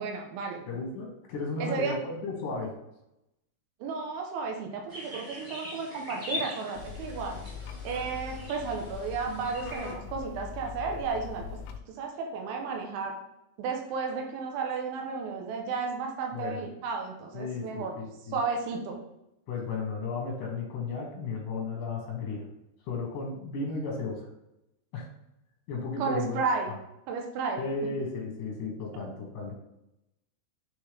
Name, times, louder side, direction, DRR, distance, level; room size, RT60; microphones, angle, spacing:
voice 1, 0.0-0.7 1.6-2.0 3.8-7.4 7.8-11.5 12.0-13.1 13.6-18.0 18.3-19.0 26.0-26.7 27.1-27.6, right 4 dB, 85° right, 1 dB, 3.3 m, -33 dB
voice 2, 0.7-2.7 16.3-16.6 17.3-18.4 19.5-22.5 22.8-24.3 24.9-25.1 25.7-26.4 27.6-29.5, left 3 dB, 75° left, -1 dB, 1.9 m, -34 dB
sound 1, 4.9-9.9, left 2 dB, 25° right, 1.2 m, -41 dB
sound 2, 6.8-11.8, left 7 dB, 90° left, 3.0 m, -42 dB
9.9 x 3.5 x 3.3 m, 0.88 s
omnidirectional pair, 5.4 m